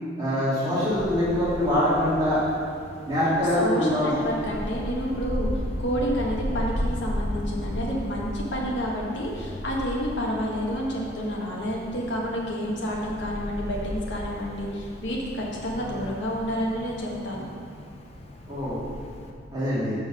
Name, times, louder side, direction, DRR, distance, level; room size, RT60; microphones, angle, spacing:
voice 1, 0.2-2.4 3.1-4.2 18.5-18.8 19.5-19.9, left 1 dB, 20° right, -11 dB, 2.0 m, -24 dB
Wind, 0.7-19.3, equal, 35° left, 0.7 m, -35 dB
voice 2, 3.6-5.5 5.8-17.4, equal, 65° left, -3 dB, 1.5 m, -29 dB
7.1 x 5.4 x 6.0 m, 2.3 s
head